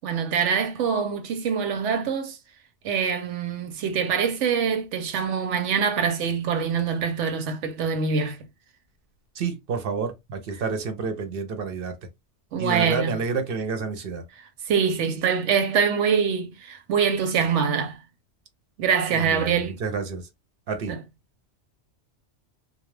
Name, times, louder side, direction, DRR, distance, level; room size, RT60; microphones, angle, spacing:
voice 1, 0.0-2.4 2.8-8.4 12.5-13.1 14.7-18.0 18.8-19.7 20.9-21.0, right 6 dB, 90° right, 1.0 m, -24 dB
voice 2, 9.3-12.0 12.6-14.2 19.1-20.3 20.7-21.0, right 5 dB, 60° right, 0.7 m, -29 dB
2.3 x 2.1 x 3.1 m
omnidirectional pair, 1.2 m